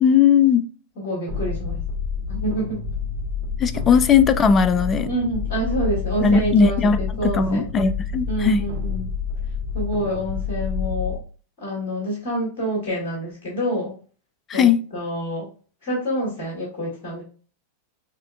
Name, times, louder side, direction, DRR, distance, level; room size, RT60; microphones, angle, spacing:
voice 1, 0.0-0.6 3.6-5.1 6.2-8.7 14.5-14.8, left 6 dB, 25° left, 0.3 m, -18 dB
voice 2, 0.9-1.8 2.3-2.8 5.1-7.6 8.3-9.1 9.7-11.2 11.6-13.9 14.5-15.5 15.8-17.2, right 1 dB, 45° left, 1.7 m, -27 dB
sound 1, 1.3-11.2, left 5 dB, 65° right, 0.8 m, -28 dB
6.2 x 2.5 x 2.2 m
figure-of-eight pair, 90°, 0 cm